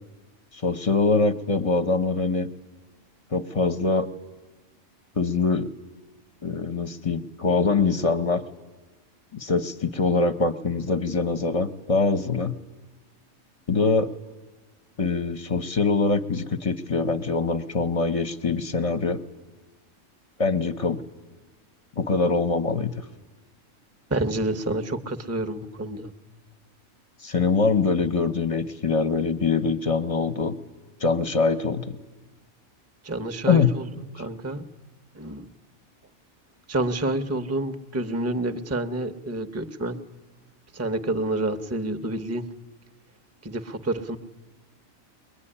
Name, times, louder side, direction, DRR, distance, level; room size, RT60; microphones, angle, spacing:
voice 1, 0.5-2.5 3.3-4.1 5.2-5.7 6.4-8.4 9.3-12.5 13.7-14.1 15.0-19.2 20.4-21.0 22.0-22.9 27.2-30.6 31.0-32.0 33.5-33.7, left 4 dB, 30° left, 11 dB, 0.8 m, -23 dB
voice 2, 24.1-26.1 33.0-33.9 34.1-34.7 35.1-35.5 36.7-40.0 40.7-42.5 43.4-44.2, right 2 dB, 15° right, 10 dB, 0.7 m, -28 dB
23.0 x 21.0 x 10.0 m, 1.3 s
omnidirectional pair, 1.5 m